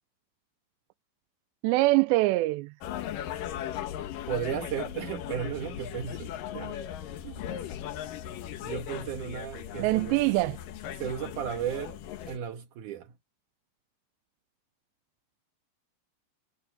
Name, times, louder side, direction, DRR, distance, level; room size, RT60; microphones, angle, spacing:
voice 1, 1.6-2.7 9.8-10.6, right 20 dB, 85° right, 2.6 m, -24 dB
sound 1, 2.8-12.4, left 10 dB, 65° left, 2.3 m, -38 dB
voice 2, 4.3-6.8 7.2-7.4 8.6-10.2 11.0-12.0 12.3-13.1, right 9 dB, 70° right, 2.0 m, -35 dB
omnidirectional pair, 5.4 m